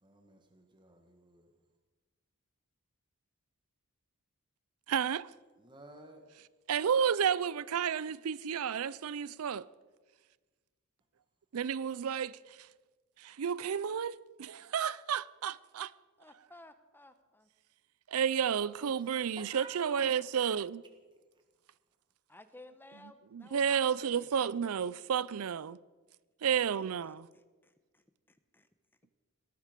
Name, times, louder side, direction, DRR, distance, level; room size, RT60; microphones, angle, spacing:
voice 1, 0.0-1.5 5.6-6.2 18.8-20.1, right 2 dB, 20° right, 1.5 m, -53 dB
voice 2, 4.9-5.3 6.7-9.6 11.5-12.3 13.2-15.9 18.1-20.8 23.3-25.8 26.4-27.3, right 7 dB, 75° right, 0.5 m, -31 dB
voice 3, 16.2-17.5 22.3-24.4 27.3-28.0 28.3-28.7, left 1 dB, 10° left, 0.9 m, -56 dB
18.5 x 13.5 x 5.2 m
head